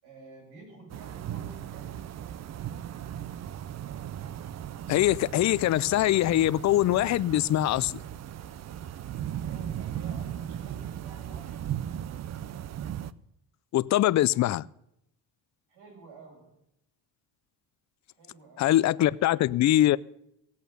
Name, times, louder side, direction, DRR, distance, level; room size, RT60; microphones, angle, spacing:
voice 1, 0.0-2.2 9.4-11.8 15.7-16.6 18.1-19.4, right 3 dB, 85° right, 7.7 m, -51 dB
sound 1, 0.9-13.1, right 10 dB, 45° right, 0.6 m, -37 dB
voice 2, 4.9-8.0 13.7-14.6 18.6-20.0, left 14 dB, 45° left, 0.5 m, -23 dB
17.0 x 8.3 x 6.7 m
cardioid pair, 125°, 39 cm